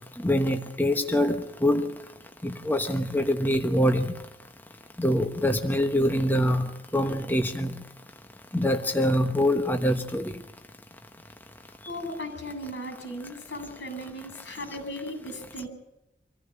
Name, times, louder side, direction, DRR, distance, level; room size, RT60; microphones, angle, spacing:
voice 1, 0.2-1.9 2.4-4.1 5.0-7.7 8.5-10.2, equal, 10° left, 5 dB, 1.2 m, -24 dB
voice 2, 11.9-15.7, equal, 80° left, 8 dB, 8.0 m, -37 dB
26.0 x 14.5 x 8.9 m, 0.93 s
head